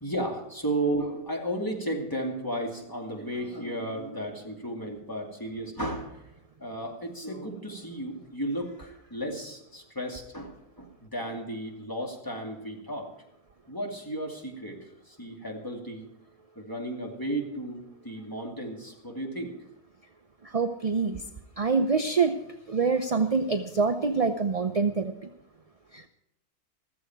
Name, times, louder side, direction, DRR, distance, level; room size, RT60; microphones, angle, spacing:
voice 1, 0.0-6.2 6.6-13.1 13.7-16.1 16.6-19.5, right 1 dB, 15° left, 1 dB, 2.5 m, -34 dB
voice 2, 20.5-21.2 21.6-22.3 22.7-25.1 25.9-26.1, right 4 dB, 40° right, 6 dB, 0.5 m, -25 dB
15.0 x 14.0 x 4.7 m, 0.82 s
omnidirectional pair, 1.6 m